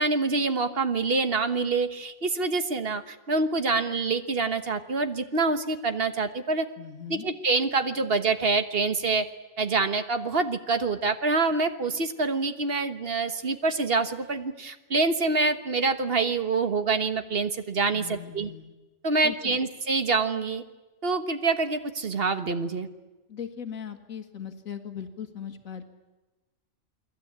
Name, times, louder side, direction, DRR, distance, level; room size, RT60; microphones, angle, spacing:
voice 1, 0.0-6.7 7.1-9.3 9.6-18.5 19.0-20.6 21.0-22.9, right 3 dB, 45° right, 9 dB, 1.5 m, -26 dB
voice 2, 6.8-7.3 17.9-18.7 19.2-19.6 23.3-25.8, left 8 dB, 90° left, 6 dB, 2.1 m, -39 dB
29.0 x 20.5 x 8.8 m, 1.1 s
omnidirectional pair, 1.4 m